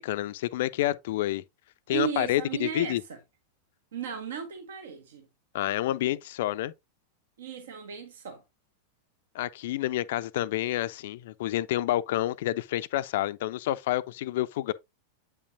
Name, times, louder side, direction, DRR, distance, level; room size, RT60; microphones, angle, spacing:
voice 1, 0.0-1.4 1.9-3.0 5.5-6.7 9.3-14.7, left 14 dB, 55° left, 0.4 m, -29 dB
voice 2, 1.9-3.0 3.9-5.2 7.4-8.4, right 8 dB, 60° right, 0.9 m, -35 dB
8.2 x 5.6 x 2.6 m
figure-of-eight pair, 90°, 0 cm